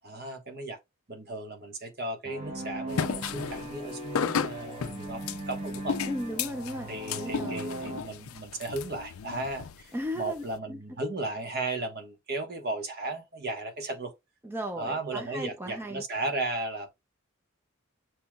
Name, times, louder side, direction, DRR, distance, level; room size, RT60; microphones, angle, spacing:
voice 1, 0.0-0.8 1.1-6.0 6.9-14.1 14.8-16.9, right 2 dB, 50° right, 1.2 m, -35 dB
sound 1, 2.2-8.0, right 1 dB, 30° right, 1.1 m, -38 dB
sound 2, 2.9-10.6, left 7 dB, 85° left, 0.5 m, -34 dB
voice 2, 6.1-6.9 7.2-7.6 9.9-10.8 14.4-16.0, equal, 10° right, 0.5 m, -36 dB
6.8 x 3.0 x 2.3 m
head